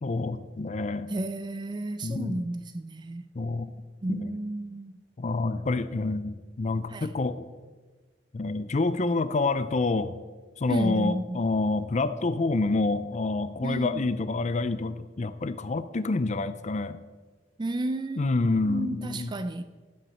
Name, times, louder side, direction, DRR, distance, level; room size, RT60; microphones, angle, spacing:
voice 1, 0.0-1.1 2.0-2.4 3.4-3.7 4.1-4.3 5.2-7.5 8.3-10.2 10.6-17.0 18.2-19.3, left 3 dB, 40° left, 0.5 m, -28 dB
voice 2, 1.1-3.2 4.0-5.0 6.9-7.1 10.7-11.4 13.6-14.0 17.6-18.3 18.6-19.6, right 1 dB, 25° right, 0.4 m, -32 dB
10.5 x 7.9 x 7.0 m
head